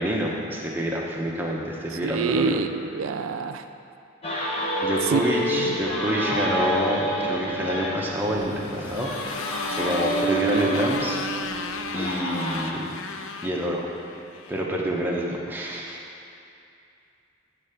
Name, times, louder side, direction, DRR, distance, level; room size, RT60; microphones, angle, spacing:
voice 1, 0.0-2.5 4.4-4.5 4.8-11.2 11.9-12.9 13.4-13.9 14.5-16.0, equal, 10° right, -3 dB, 0.8 m, -27 dB
voice 2, 2.0-3.7 5.1-5.2 5.5-5.7, right 5 dB, 85° right, 8 dB, 0.4 m, -26 dB
sound 1, 4.2-12.8, equal, 30° left, 0.9 m, -28 dB
Motorcycle, 8.2-14.6, left 5 dB, 75° left, 0.4 m, -35 dB
9.4 x 3.3 x 6.7 m, 2.6 s
head